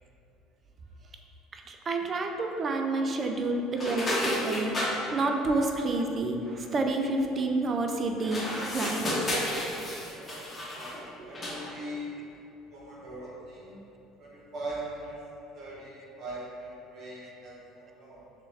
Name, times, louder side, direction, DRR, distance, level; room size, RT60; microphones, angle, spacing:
voice 1, 1.5-9.1 11.2-11.3, right 2 dB, 30° right, 3 dB, 0.4 m, -29 dB
sound 1, 3.8-5.0 8.2-11.0 11.3-11.7, left 1 dB, 25° left, 1.0 m, -31 dB
voice 2, 10.0-12.1 12.7-13.8 14.2-15.2 15.5-18.2, right 1 dB, 55° right, -6 dB, 1.0 m, -41 dB
6.5 x 2.3 x 3.3 m, 2.7 s
cardioid pair, 125°, 0 cm